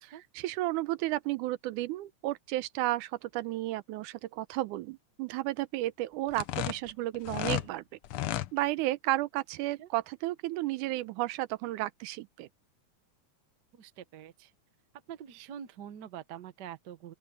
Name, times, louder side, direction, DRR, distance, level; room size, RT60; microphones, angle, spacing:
voice 1, 0.1-7.8 8.5-12.5, right 17 dB, 85° right, 2.2 m, -33 dB
sound 1, 6.3-7.7 8.0-8.5, left 14 dB, 90° left, 1.2 m, -32 dB
voice 2, 13.7-14.5 15.1-17.1, right 9 dB, 70° right, 1.0 m, -45 dB
open air
omnidirectional pair, 3.5 m